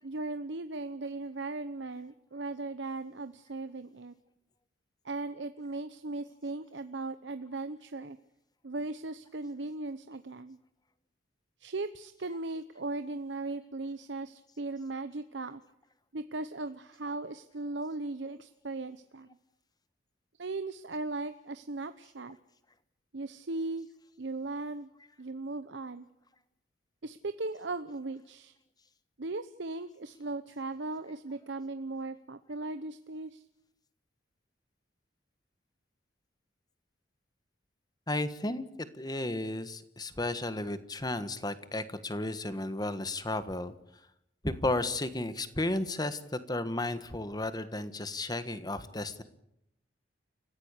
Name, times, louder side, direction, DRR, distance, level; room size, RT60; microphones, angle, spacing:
voice 1, 0.0-4.1 5.0-8.2 8.6-10.6 11.6-15.6 16.1-19.3 20.4-22.4 23.1-23.9 24.2-24.9 25.2-26.1 27.0-28.5 29.2-33.4, right 2 dB, 70° right, 11 dB, 0.9 m, -38 dB
voice 2, 38.1-38.7 38.9-43.7 44.4-49.2, left 2 dB, 20° left, 12 dB, 1.5 m, -33 dB
30.0 x 15.5 x 8.3 m, 0.79 s
head